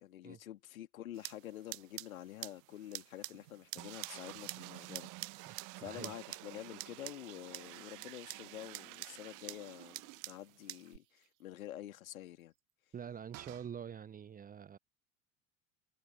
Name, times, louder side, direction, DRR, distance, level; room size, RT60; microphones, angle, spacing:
voice 1, 0.0-12.5, left 13 dB, 70° left, 2.6 m, -48 dB
sound 1, 1.1-11.0, right 18 dB, 65° right, 0.6 m, -49 dB
sound 2, 3.8-10.9 11.3-11.4 11.6-11.7 13.3-13.7, right 24 dB, 45° right, 1.1 m, -51 dB
voice 2, 5.8-6.1 12.9-14.8, right 8 dB, 20° right, 0.8 m, -46 dB
figure-of-eight pair, 75°, 43 cm